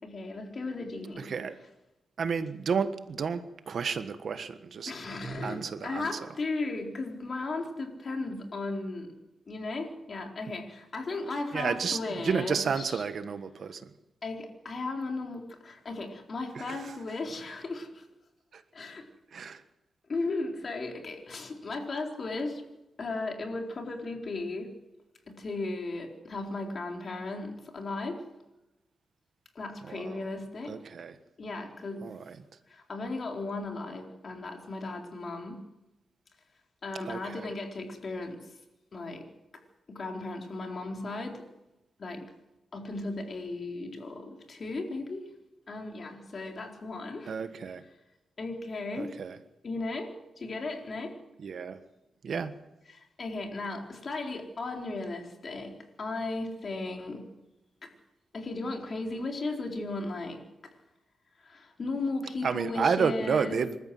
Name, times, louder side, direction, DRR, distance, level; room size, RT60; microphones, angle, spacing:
voice 1, 0.0-1.3 4.9-9.1 9.5-13.0 14.2-18.1 18.7-19.0 20.1-22.6 23.0-24.7 25.3-28.2 29.5-30.7 31.4-32.0 32.7-35.6 36.8-38.5 38.9-39.2 39.9-41.4 42.0-42.3 42.7-45.3 45.7-47.3 48.4-49.1 49.6-51.1 52.9-57.2 57.8-57.9 58.3-60.4 61.4-63.6, left 3 dB, 45° left, 2 dB, 4.2 m, -36 dB
voice 2, 1.2-1.6 2.2-4.9 5.4-6.3 10.5-10.6 11.5-13.9 16.5-16.9 18.5-18.6 19.3-19.6 29.8-30.3 30.7-31.2 32.0-32.4 37.0-37.5 47.3-47.8 49.0-49.4 51.4-51.8 52.2-52.6 62.4-63.8, right 6 dB, 60° right, 10 dB, 1.4 m, -31 dB
26.5 x 13.5 x 7.9 m, 0.97 s
wide cardioid pair, 115°, 0 cm